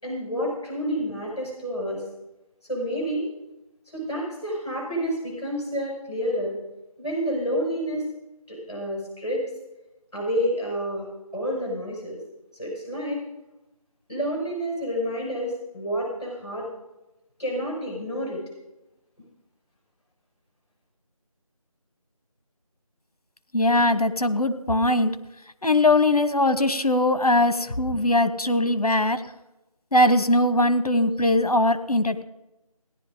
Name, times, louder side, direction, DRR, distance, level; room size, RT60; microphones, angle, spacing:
voice 1, 0.0-2.0 2.7-3.3 3.9-6.6 7.0-8.1 8.5-9.4 10.1-11.1 11.3-12.2 12.6-13.2 14.1-16.7 17.4-18.4, equal, 45° left, -3 dB, 5.4 m, -29 dB
voice 2, 23.5-25.1 25.6-29.2 29.9-32.2, left 1 dB, 80° left, 11 dB, 1.1 m, -21 dB
17.5 x 11.0 x 3.8 m, 0.96 s
figure-of-eight pair, 170°, 19 cm